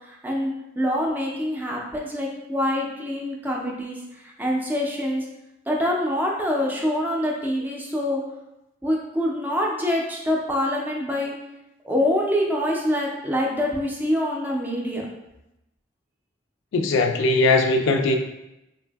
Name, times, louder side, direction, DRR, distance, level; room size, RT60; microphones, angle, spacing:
voice 1, 0.1-4.0 4.4-5.2 5.7-8.2 8.8-11.3 11.8-15.1, left 1 dB, 10° right, -1 dB, 0.3 m, -25 dB
voice 2, 16.7-18.2, left 2 dB, 80° left, 4 dB, 0.3 m, -20 dB
3.2 x 2.6 x 2.2 m, 0.92 s
head